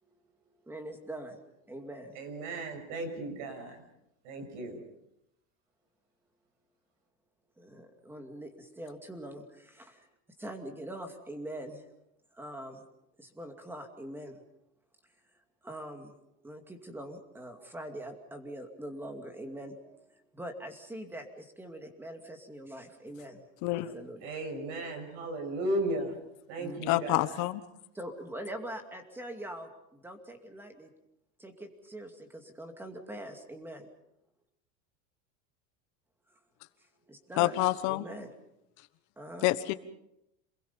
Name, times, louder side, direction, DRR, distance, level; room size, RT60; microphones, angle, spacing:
voice 1, 0.6-2.2 7.6-10.1 10.4-11.8 12.3-12.8 13.2-14.4 15.6-16.1 16.4-23.4 23.8-24.4 26.6-26.8 27.9-30.9 31.4-33.9 36.3-36.4 36.8-38.3 39.2-39.5, right 1 dB, 5° right, 5 dB, 2.4 m, -43 dB
voice 2, 2.1-3.8 4.2-4.8 24.2-26.1 26.5-27.3, right 1 dB, 60° right, 5 dB, 6.8 m, -35 dB
voice 3, 26.9-27.6 37.4-38.0 39.4-39.7, left 17 dB, 45° left, 12 dB, 1.3 m, -27 dB
28.0 x 21.5 x 5.5 m, 0.84 s
supercardioid pair, 160°, 39 cm